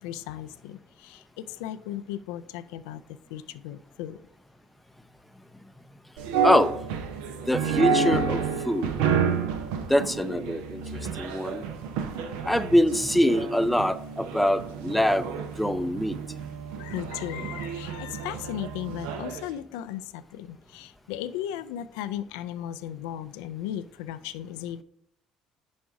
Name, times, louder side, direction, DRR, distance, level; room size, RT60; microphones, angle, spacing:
voice 1, 0.0-3.0 3.3-4.2 16.8-24.8, left 11 dB, 75° left, 12 dB, 0.3 m, -36 dB
sound 1, 6.2-19.5, right 6 dB, 75° right, 0.6 m, -30 dB
voice 2, 6.4-6.7 7.5-9.0 9.9-10.8 11.2-11.6 12.4-15.3 15.6-16.2, equal, ahead, 12 dB, 0.5 m, -24 dB
6.3 x 4.6 x 4.8 m, 0.71 s
hypercardioid pair, 60°, 3 cm